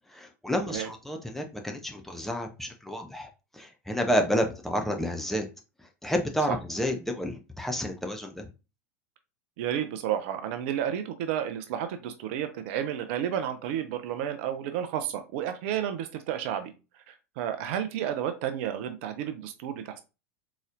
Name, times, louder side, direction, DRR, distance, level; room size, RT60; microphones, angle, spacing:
voice 1, 0.1-5.5 5.8-8.5, equal, 5° left, 0.6 m, -30 dB
voice 2, 9.6-16.7 17.1-20.0, right 10 dB, 50° right, 0.5 m, -31 dB
4.0 x 3.0 x 2.5 m
figure-of-eight pair, 85°, 8 cm